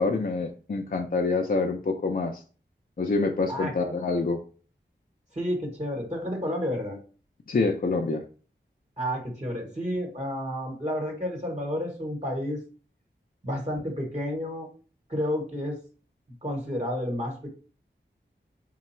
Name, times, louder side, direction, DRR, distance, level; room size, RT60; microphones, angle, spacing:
voice 1, 0.0-2.4 3.0-4.4 7.5-8.2, left 3 dB, 50° left, 2 dB, 0.5 m, -26 dB
voice 2, 5.3-7.0 9.0-12.6 13.4-14.7 15.1-15.8 16.4-17.5, equal, 35° right, 0 dB, 1.2 m, -30 dB
3.9 x 2.2 x 4.2 m, 0.38 s
wide cardioid pair, 50°, 19 cm